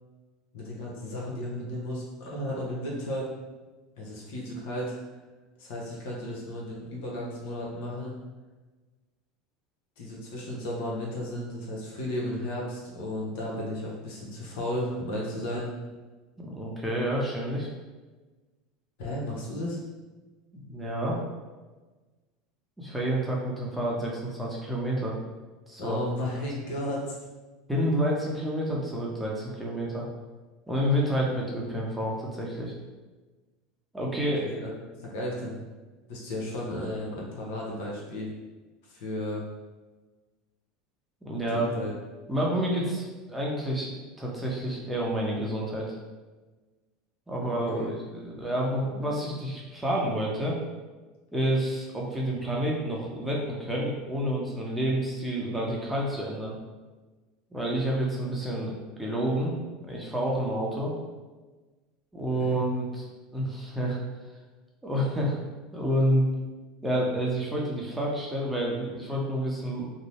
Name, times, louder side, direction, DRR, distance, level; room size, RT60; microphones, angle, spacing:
voice 1, 0.5-3.3 4.0-5.0 5.6-8.2 10.0-15.7 19.0-19.8 25.8-27.2 34.4-34.7 35.0-35.6 36.1-38.3 38.9-39.4 41.5-41.9 47.4-47.9 62.4-62.6, left 1 dB, 70° left, -3 dB, 0.8 m, -34 dB
voice 2, 16.4-17.7 20.7-21.2 22.8-25.2 25.7-26.0 27.7-30.1 30.7-32.7 33.9-34.5 41.2-41.7 42.3-43.9 44.2-46.0 47.3-50.5 51.3-56.5 57.5-59.5 59.8-60.9 62.1-63.1 63.3-64.0 64.8-65.4 65.7-66.3 66.8-69.9, right 1 dB, 10° right, -4 dB, 0.7 m, -29 dB
2.7 x 2.0 x 3.0 m, 1.2 s
hypercardioid pair, 95°, 0 cm